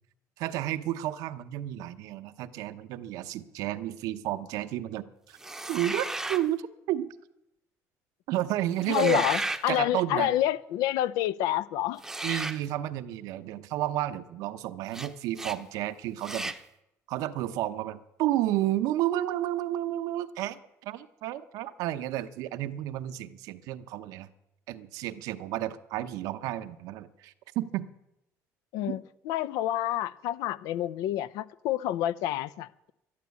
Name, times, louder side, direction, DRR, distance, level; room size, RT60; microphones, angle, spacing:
voice 1, 0.4-5.4 5.7-6.6 6.9-7.1 8.3-9.3 9.7-10.3 12.2-16.5 17.1-24.3 24.7-27.9 28.9-29.0, right 13 dB, 80° right, 0.8 m, -31 dB
sound 1, 5.4-6.5 8.8-9.6 12.0-12.6 14.9-15.1 15.3-15.6 16.2-16.6, right 2 dB, 5° right, 0.7 m, -34 dB
voice 2, 8.9-12.0 28.7-32.9, left 13 dB, 85° left, 0.6 m, -28 dB
12.0 x 11.5 x 8.3 m
cardioid pair, 145°, 6 cm